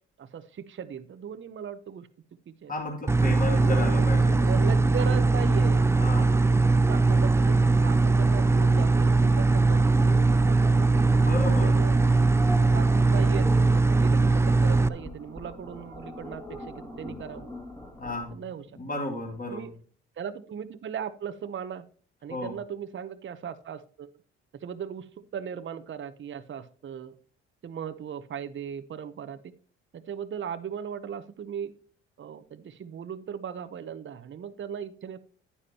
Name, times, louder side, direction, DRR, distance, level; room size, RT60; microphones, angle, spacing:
voice 1, 0.2-2.1 2.5-2.7 3.5-10.9 11.4-12.0 12.7-17.5 18.3-18.6 19.5-19.7 20.2-21.9 22.2-24.1 24.6-27.1 27.6-29.4 29.9-31.7 32.2-35.2, right 8 dB, 40° right, 11 dB, 0.8 m, -38 dB
voice 2, 2.7-4.5 6.0-6.3 11.2-11.8 18.0-18.4 18.8-19.7 22.3-22.6, left 2 dB, 30° left, 1 dB, 2.8 m, -33 dB
sound 1, 3.1-14.9, right 3 dB, 10° right, 0.3 m, -21 dB
sound 2, 3.5-18.3, left 1 dB, 10° left, 2.3 m, -40 dB
9.9 x 9.8 x 2.8 m, 0.43 s
supercardioid pair, 65°, 29 cm